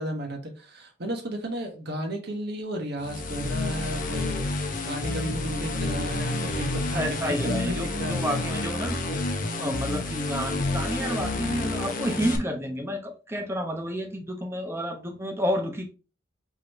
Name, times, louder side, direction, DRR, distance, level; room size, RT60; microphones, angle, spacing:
voice 1, 0.0-8.2 9.0-9.1, equal, 55° right, 1.2 m, -33 dB
sound 1, 3.0-12.4, left 2 dB, 45° left, 0.7 m, -29 dB
voice 2, 6.9-9.0 9.6-15.9, equal, 15° right, 0.8 m, -30 dB
4.9 x 3.0 x 3.0 m
head